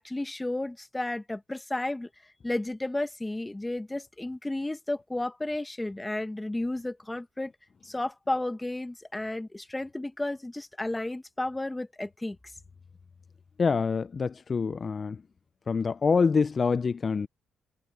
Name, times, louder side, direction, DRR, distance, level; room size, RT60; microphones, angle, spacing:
voice 1, 0.0-2.1 2.4-7.5 7.8-12.4, left 2 dB, 10° left, 1.4 m, -32 dB
voice 2, 13.6-15.2 15.7-17.3, left 5 dB, 40° left, 0.5 m, -26 dB
cardioid pair, 90°, 0 cm